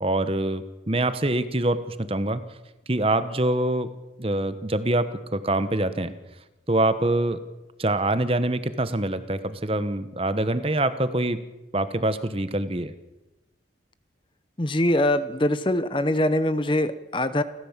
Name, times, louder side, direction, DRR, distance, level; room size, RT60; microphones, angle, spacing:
voice 1, 0.0-2.4 2.9-3.9 4.2-5.0 5.3-6.1 6.7-7.4 7.8-11.4 11.7-12.9, right 1 dB, 30° right, 12 dB, 1.1 m, -25 dB
voice 2, 14.6-17.4, left 1 dB, 25° left, 13 dB, 0.8 m, -23 dB
29.5 x 14.5 x 7.4 m, 1.1 s
head